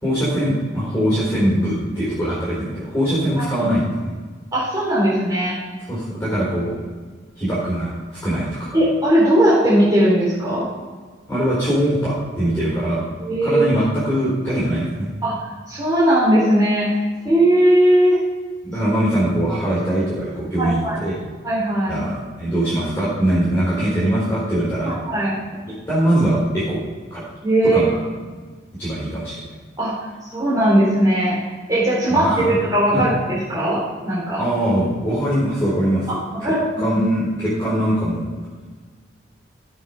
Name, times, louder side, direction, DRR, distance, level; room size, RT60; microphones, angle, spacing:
voice 1, 0.0-4.1 5.9-6.8 7.4-8.7 11.3-13.0 13.4-15.1 18.6-21.2 21.9-25.0 25.9-26.8 27.1-27.2 27.6-28.0 28.8-29.4 32.1-32.6 32.9-33.1 34.4-36.1 36.8-38.3, right 1 dB, 15° left, -9 dB, 3.8 m, -21 dB
voice 2, 4.5-5.5 8.7-10.6 13.2-13.6 15.2-15.3 15.7-17.0 17.2-18.2 18.8-18.9 20.6-21.0 21.4-22.0 24.8-25.3 27.4-27.8 29.8-29.9 30.2-31.4 31.7-34.4 36.4-36.8, right 1 dB, 20° right, -9 dB, 3.4 m, -18 dB
15.0 x 5.6 x 5.6 m, 1.5 s
head